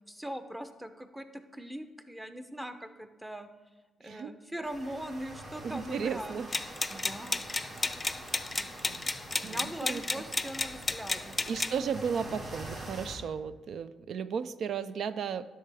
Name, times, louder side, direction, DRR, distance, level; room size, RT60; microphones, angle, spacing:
voice 1, 0.1-3.5 4.0-6.4 6.9-7.5 9.4-11.4, equal, 5° right, 9 dB, 0.7 m, -41 dB
voice 2, 4.0-4.3 5.6-6.5 8.6-9.1 9.4-10.2 11.5-15.5, right 6 dB, 65° right, 13 dB, 0.3 m, -35 dB
sound 1, 4.6-13.2, right 1 dB, 45° right, 2.1 m, -45 dB
sound 2, 6.5-11.7, left 3 dB, 20° left, 0.4 m, -32 dB
10.5 x 6.6 x 3.5 m, 1.2 s
cardioid pair, 90°, 0 cm